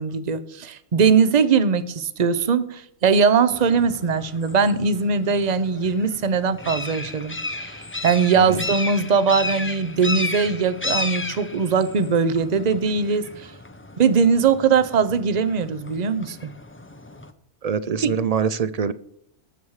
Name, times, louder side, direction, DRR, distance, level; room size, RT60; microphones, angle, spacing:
voice 1, 0.0-7.7 8.0-13.5 14.0-16.5 18.1-18.2, right 5 dB, 40° right, 14 dB, 0.8 m, -20 dB
sound 1, 3.5-17.3, left 2 dB, 15° left, 0.5 m, -34 dB
voice 2, 17.6-18.9, right 6 dB, 55° right, 15 dB, 0.4 m, -24 dB
19.5 x 7.2 x 4.8 m, 0.71 s
omnidirectional pair, 1.2 m